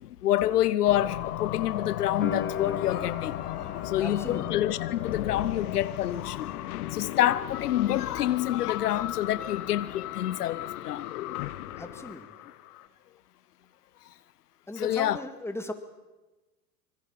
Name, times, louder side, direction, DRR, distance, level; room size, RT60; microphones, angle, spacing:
voice 1, 0.0-3.6 3.8-11.1 14.7-15.2, left 12 dB, 90° left, 0.8 m, -27 dB
sound 1, 0.9-12.9, left 14 dB, 70° left, 1.3 m, -36 dB
sound 2, 2.2-9.0 9.3-10.2, left 6 dB, 25° left, 2.0 m, -41 dB
voice 2, 4.0-4.5 11.8-12.3 14.7-15.7, left 2 dB, 5° left, 2.2 m, -37 dB
25.0 x 21.5 x 5.8 m
hypercardioid pair, 100°, 45 cm